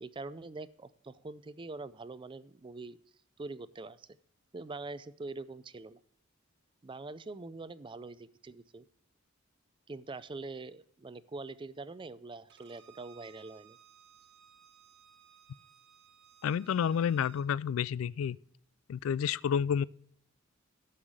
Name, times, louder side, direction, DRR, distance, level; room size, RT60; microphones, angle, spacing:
voice 1, 0.0-3.0 3.4-4.1 4.5-6.0 6.8-8.8 9.9-13.8, right 3 dB, 25° right, 0.4 m, -44 dB
Bowed string instrument, 12.5-17.5, right 9 dB, 60° right, 1.0 m, -60 dB
voice 2, 16.4-18.4 18.9-19.8, left 8 dB, 85° left, 0.3 m, -30 dB
13.0 x 5.7 x 4.8 m
head